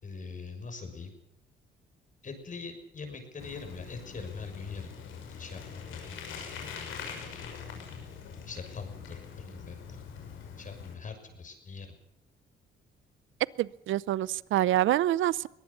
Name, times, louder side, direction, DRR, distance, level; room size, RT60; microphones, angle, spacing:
voice 1, 0.0-1.1 2.2-4.9 5.4-6.2 8.5-9.8 10.6-11.9, left 4 dB, 40° left, 7 dB, 6.4 m, -42 dB
Bicycle, 3.4-10.9, left 6 dB, 90° left, 6.2 m, -43 dB
voice 2, 13.6-15.5, right 13 dB, 80° right, 21 dB, 0.7 m, -26 dB
23.0 x 18.5 x 7.2 m, 0.80 s
cardioid pair, 90°, 20 cm